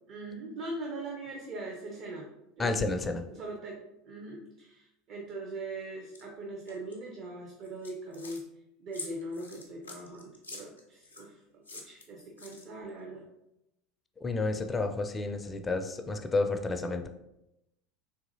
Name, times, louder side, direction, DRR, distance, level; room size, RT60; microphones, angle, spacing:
voice 1, 0.1-2.3 2.6-2.7 3.3-3.8 4.0-8.4 8.8-13.3, right 2 dB, 50° right, -1 dB, 0.6 m, -41 dB
voice 2, 2.6-3.2 14.2-17.1, left 3 dB, 20° left, 6 dB, 0.4 m, -30 dB
sound 1, 6.1-6.2 6.7-7.0 7.6-8.4 8.9-11.3 11.6-12.9, left 3 dB, 90° left, 0.5 m, -46 dB
3.7 x 2.8 x 2.6 m, 0.87 s
figure-of-eight pair, 75°, 0 cm